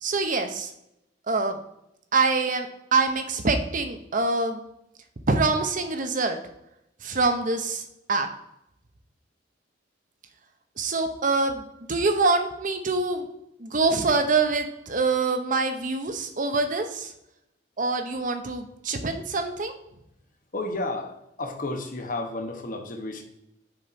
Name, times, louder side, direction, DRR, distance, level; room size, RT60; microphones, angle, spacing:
voice 1, 0.0-0.7 1.3-1.6 2.1-4.6 5.3-6.4 7.0-8.3 10.8-13.3 13.6-17.1 17.8-19.7, right 3 dB, 45° right, 6 dB, 0.8 m, -25 dB
voice 2, 20.5-23.2, left 2 dB, 45° left, 5 dB, 1.1 m, -32 dB
6.7 x 4.3 x 4.3 m, 0.83 s
head